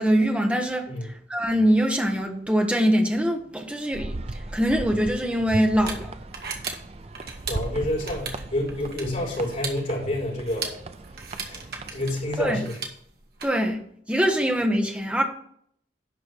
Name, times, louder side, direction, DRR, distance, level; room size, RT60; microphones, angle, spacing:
voice 1, 0.0-6.1 12.4-12.6 13.4-13.8 14.1-15.2, equal, 5° right, 1.1 m, -23 dB
sound 1, 3.9-12.6, right 2 dB, 35° right, 0.6 m, -37 dB
sound 2, 4.8-13.4, right 5 dB, 60° right, 1.7 m, -38 dB
voice 2, 7.5-10.7 11.4-11.6 11.9-12.8, left 1 dB, 45° left, 3.9 m, -28 dB
11.5 x 4.1 x 6.2 m
head